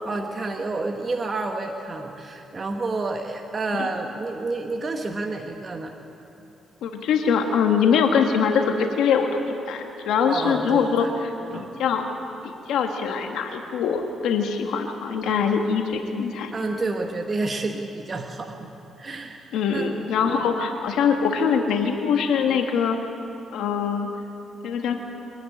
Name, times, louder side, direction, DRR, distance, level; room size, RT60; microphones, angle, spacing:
voice 1, 0.0-5.9 10.3-11.1 11.5-11.7 15.3-15.5 16.5-18.6 19.0-19.9 20.2-20.6, right 3 dB, 35° right, 3 dB, 1.4 m, -29 dB
voice 2, 6.8-9.4 9.7-12.0 12.4-16.5 19.5-23.0 23.5-24.1 24.6-25.0, left 6 dB, 80° left, 4 dB, 1.5 m, -23 dB
25.0 x 11.0 x 9.8 m, 3.0 s
cardioid pair, 90°, 0 cm